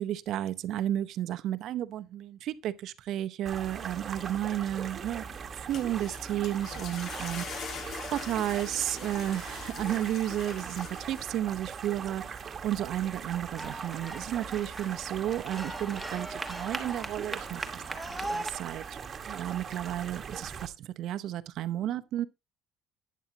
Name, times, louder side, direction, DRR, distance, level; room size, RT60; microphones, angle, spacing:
voice 1, 0.0-5.3 5.5-18.8 19.3-22.3, right 12 dB, 55° right, 0.7 m, -33 dB
sound 1, 3.5-20.7, right 6 dB, 30° right, 1.3 m, -41 dB
sound 2, 5.5-11.6, left 6 dB, 45° left, 1.6 m, -43 dB
sound 3, 13.5-18.5, right 1 dB, ahead, 1.2 m, -39 dB
11.5 x 9.3 x 2.8 m
cardioid pair, 135°, 0 cm